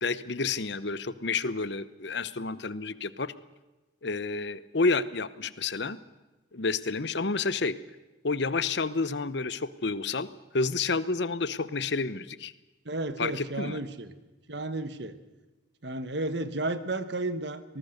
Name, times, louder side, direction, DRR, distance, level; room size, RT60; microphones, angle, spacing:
voice 1, 0.0-3.3 4.0-6.0 6.5-7.8 8.2-10.3 10.5-12.5 13.2-13.8, left 4 dB, 60° left, 15 dB, 0.9 m, -30 dB
voice 2, 12.8-14.1 14.5-15.2 15.8-17.6, right 2 dB, 60° right, 11 dB, 1.4 m, -32 dB
24.5 x 19.5 x 6.6 m, 1.1 s
head